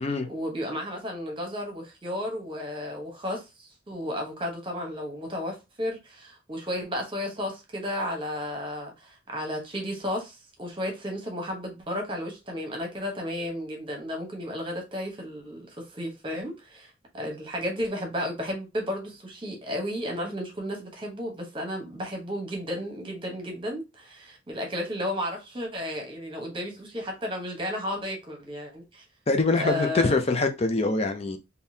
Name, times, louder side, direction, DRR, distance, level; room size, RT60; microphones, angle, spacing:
voice 1, 0.3-29.0 29.5-30.2, left 1 dB, 25° right, 1.0 m, -33 dB
voice 2, 29.3-31.4, left 3 dB, 30° left, 0.5 m, -24 dB
3.7 x 2.7 x 2.7 m
head